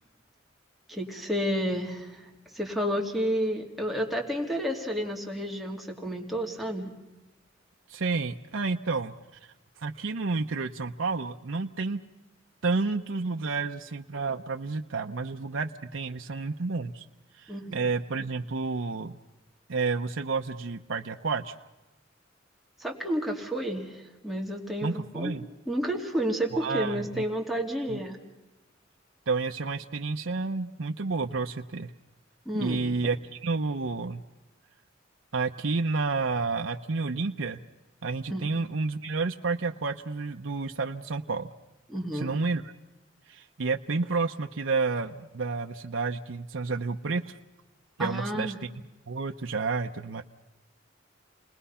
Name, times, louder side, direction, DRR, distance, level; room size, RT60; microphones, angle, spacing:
voice 1, 0.9-2.3 2.5-6.9 17.5-17.8 22.8-25.3 25.7-28.2 32.5-32.9 38.3-38.5 41.9-42.3 48.0-48.6, equal, ahead, -1 dB, 2.7 m, -31 dB
voice 2, 7.9-9.1 9.8-12.0 12.6-17.0 17.4-19.2 19.7-21.5 24.8-25.5 26.5-27.3 27.9-28.0 29.3-31.9 32.5-34.2 35.3-37.6 38.0-41.5 42.1-42.6 43.3-47.4 48.0-48.7 49.1-50.2, right 4 dB, 85° right, 4 dB, 0.8 m, -30 dB
30.0 x 20.0 x 5.7 m, 1.1 s
head